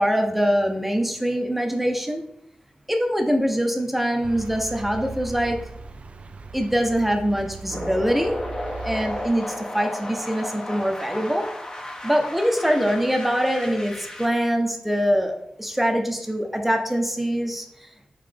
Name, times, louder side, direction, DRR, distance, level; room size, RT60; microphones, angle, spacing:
voice 1, 0.0-2.2 2.9-5.6 6.5-8.4 8.8-11.5 12.0-17.9, equal, 5° right, 4 dB, 0.7 m, -23 dB
sound 1, 4.2-9.3, right 4 dB, 55° right, 0.3 m, -38 dB
sound 2, 7.7-14.3, left 1 dB, 30° left, 0.9 m, -34 dB
3.9 x 3.2 x 3.4 m, 0.77 s
cardioid pair, 50°, 2 cm